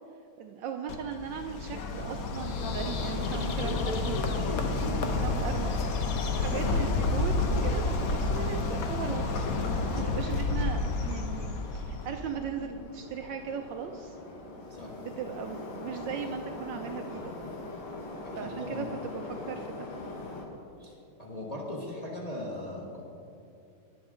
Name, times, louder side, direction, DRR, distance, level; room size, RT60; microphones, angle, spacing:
voice 1, 0.4-4.2 4.8-5.8 6.1-9.5 9.9-14.2 15.0-17.6 18.3-19.9, right 7 dB, 75° right, 5 dB, 1.1 m, -38 dB
Bird, 0.9-12.3, left 3 dB, 55° left, 1.0 m, -29 dB
voice 2, 5.0-5.3 14.7-14.9 18.2-18.3 18.6-18.9 20.8-23.1, left 1 dB, 25° left, -3 dB, 1.1 m, -39 dB
Subway metro underground, 10.1-20.5, left 2 dB, 85° left, 2.2 m, -42 dB
19.5 x 7.1 x 3.7 m, 2.6 s
omnidirectional pair, 2.3 m